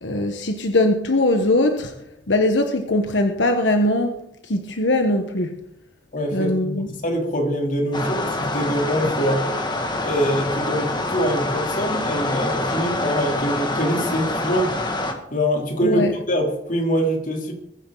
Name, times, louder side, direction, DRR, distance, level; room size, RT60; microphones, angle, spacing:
voice 1, 0.0-1.9 2.3-5.5 6.3-6.9 15.8-16.1, left 1 dB, 85° left, 5 dB, 1.3 m, -21 dB
voice 2, 6.1-6.5 7.0-9.5 10.0-14.7 15.3-17.5, equal, 50° left, 1 dB, 3.2 m, -24 dB
sound 1, 7.9-15.1, left 2 dB, 25° left, 2.1 m, -26 dB
21.5 x 10.0 x 4.0 m, 0.81 s
head